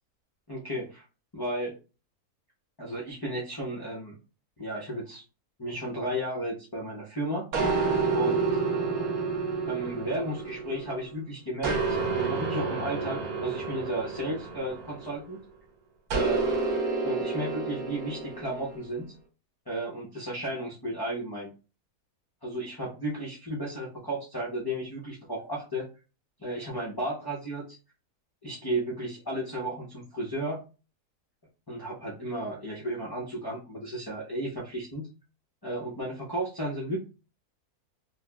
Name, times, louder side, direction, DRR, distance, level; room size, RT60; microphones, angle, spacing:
voice 1, 0.5-1.0 1.3-1.8 2.8-4.2 4.6-5.2 5.6-7.5 8.1-8.6 9.7-15.4 16.1-16.4 17.0-19.1 19.7-21.5 22.4-25.9 26.4-27.8 28.4-30.6 31.7-35.1 35.6-37.0, right 1 dB, 35° left, -6 dB, 0.3 m, -34 dB
sound 1, 7.5-11.1 11.6-15.3 16.1-18.8, right 4 dB, 70° right, 1.3 m, -29 dB
4.2 x 2.0 x 2.2 m, 0.32 s
omnidirectional pair, 1.6 m